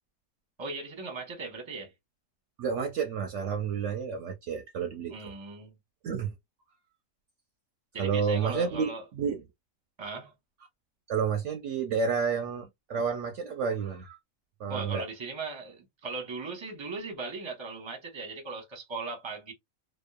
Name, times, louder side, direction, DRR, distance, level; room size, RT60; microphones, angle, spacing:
voice 1, 0.6-1.9 5.1-5.7 7.9-9.0 10.0-10.3 14.7-19.5, right 3 dB, 25° right, 0.7 m, -38 dB
voice 2, 2.6-5.3 6.0-6.3 8.0-9.4 11.1-14.2 14.6-15.1, right 6 dB, 65° right, 0.8 m, -30 dB
2.9 x 2.1 x 2.2 m
omnidirectional pair, 1.5 m